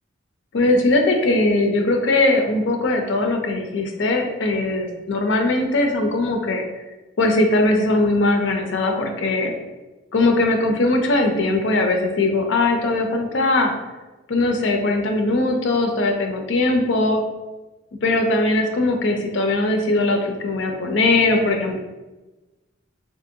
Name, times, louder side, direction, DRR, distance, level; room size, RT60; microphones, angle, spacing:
voice 1, 0.5-6.6 7.2-9.5 10.1-13.7 14.3-17.2 18.0-21.8, left 2 dB, 75° left, 3 dB, 0.5 m, -20 dB
2.8 x 2.6 x 2.6 m, 1.1 s
head